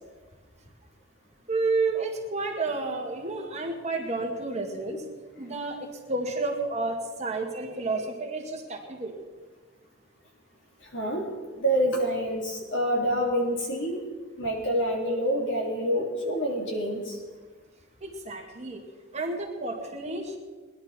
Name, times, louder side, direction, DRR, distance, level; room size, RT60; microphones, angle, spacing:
voice 1, 1.5-5.0 5.4-9.1 18.0-18.8 19.1-20.4, right 3 dB, 35° right, 1 dB, 2.0 m, -30 dB
voice 2, 10.9-11.2 11.5-14.0 14.4-17.2, equal, 65° left, -1 dB, 3.5 m, -27 dB
19.5 x 11.0 x 4.5 m, 1.4 s
head